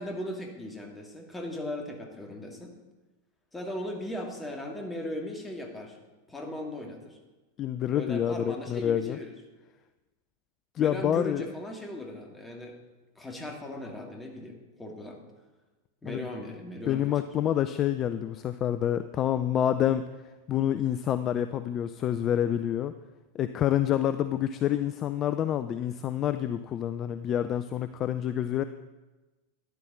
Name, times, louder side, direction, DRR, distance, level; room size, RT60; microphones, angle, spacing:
voice 1, 0.0-2.7 3.5-6.0 6.3-7.2 7.9-9.3 10.8-12.8 13.2-15.2 16.0-17.0, left 1 dB, 10° left, 1 dB, 2.3 m, -38 dB
voice 2, 7.6-9.2 10.8-11.5 16.1-16.2 16.9-20.1 20.5-22.9 23.3-28.6, left 10 dB, 30° left, 12 dB, 0.4 m, -27 dB
13.5 x 10.5 x 4.0 m, 1.2 s
figure-of-eight pair, 90°, 0 cm